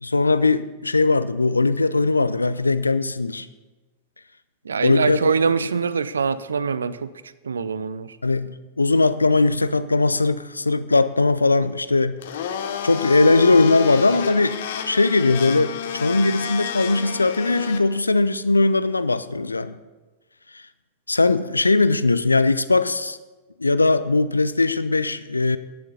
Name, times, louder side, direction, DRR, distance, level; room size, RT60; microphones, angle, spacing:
voice 1, 0.0-3.5 4.8-5.3 8.2-12.2 12.8-14.6 14.8-19.8 21.1-23.2 23.6-25.6, left 3 dB, 85° left, 14 dB, 0.4 m, -19 dB
voice 2, 4.6-7.1 7.4-8.2, right 5 dB, 75° right, 15 dB, 0.5 m, -23 dB
Domestic sounds home sounds, 12.2-17.8, left 8 dB, 60° left, 0.9 m, -30 dB
10.5 x 8.6 x 5.5 m, 1.2 s
figure-of-eight pair, 95°, 0 cm